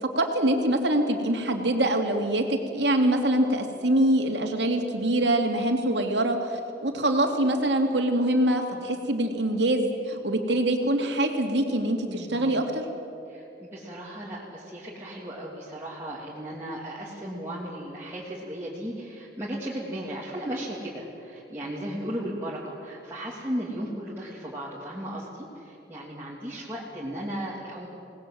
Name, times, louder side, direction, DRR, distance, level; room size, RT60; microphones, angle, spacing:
voice 1, 0.0-12.8, right 1 dB, 80° right, 3 dB, 2.8 m, -24 dB
voice 2, 12.1-12.5 13.3-27.9, right 1 dB, 15° right, -7 dB, 3.1 m, -36 dB
27.5 x 19.5 x 7.8 m, 2.7 s
head